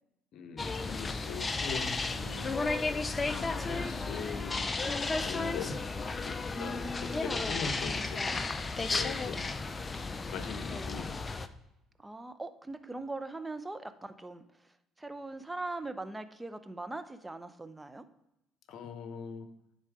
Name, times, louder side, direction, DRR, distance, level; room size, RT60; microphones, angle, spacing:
voice 1, 0.3-2.6 3.2-4.7 5.3-5.8 6.2-8.3 8.9-9.5 10.1-11.3 18.7-19.5, left 6 dB, 65° left, 9 dB, 0.8 m, -41 dB
sound 1, 0.6-11.5, left 3 dB, 25° left, 0.6 m, -33 dB
voice 2, 6.5-7.6 12.0-18.0, right 2 dB, 15° right, 11 dB, 0.7 m, -41 dB
9.9 x 4.0 x 4.8 m, 0.90 s
hypercardioid pair, 65°, 0 cm